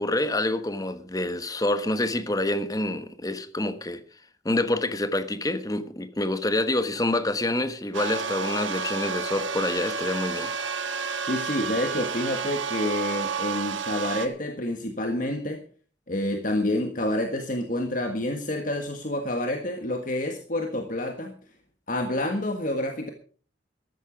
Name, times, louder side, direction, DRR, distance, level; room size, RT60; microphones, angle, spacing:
voice 1, 0.0-4.0 4.4-10.5, left 1 dB, 20° left, 1.2 m, -27 dB
sound 1, 7.9-14.3, right 5 dB, 90° right, 1.5 m, -30 dB
voice 2, 11.2-15.6 16.1-21.3 21.9-23.1, left 1 dB, 45° left, 1.6 m, -28 dB
13.5 x 13.0 x 5.2 m
head